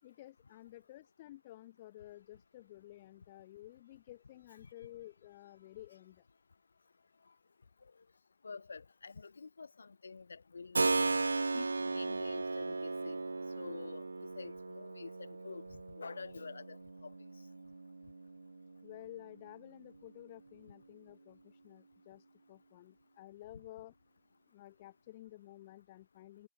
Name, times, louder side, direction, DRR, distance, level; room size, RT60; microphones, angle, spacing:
voice 1, 0.0-6.3 18.8-23.9 24.5-26.5, left 15 dB, 15° left, 6.7 m, -53 dB
voice 2, 8.4-10.9 11.5-13.2 13.5-14.0 14.3-17.1, left 4 dB, 45° left, 6.3 m, -48 dB
Keyboard (musical), 10.7-19.4, right 3 dB, 60° right, 2.0 m, -37 dB
figure-of-eight pair, 170°, 0 cm